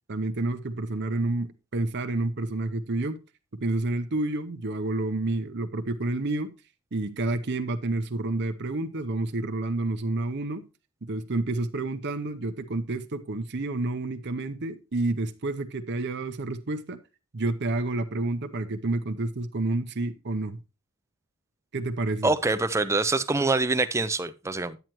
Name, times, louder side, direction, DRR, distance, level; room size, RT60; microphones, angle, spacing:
voice 1, 0.1-3.2 3.6-6.5 6.9-10.6 11.0-17.0 17.3-20.6 21.7-22.3, right 2 dB, 50° right, 0.7 m, -29 dB
voice 2, 22.2-24.8, right 3 dB, 15° right, 0.5 m, -25 dB
9.2 x 9.1 x 3.0 m
head